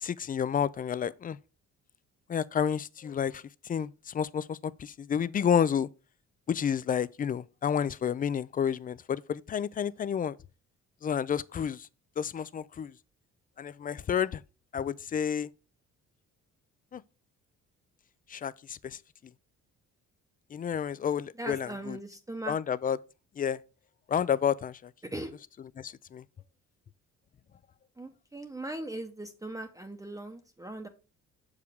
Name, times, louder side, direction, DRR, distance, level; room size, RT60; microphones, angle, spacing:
voice 1, 0.0-1.4 2.3-3.4 3.7-5.9 6.5-10.4 11.0-11.9 12.2-12.9 13.6-14.4 14.7-15.5 16.9-17.0 18.3-19.0 20.5-22.0 22.5-23.0 23.4-23.6 24.1-24.9 25.8-26.2, left 8 dB, 30° left, 0.3 m, -30 dB
voice 2, 21.4-22.6 25.0-25.3 28.0-30.9, right 1 dB, 10° right, 0.8 m, -39 dB
6.8 x 4.9 x 3.5 m
cardioid pair, 90°, 30 cm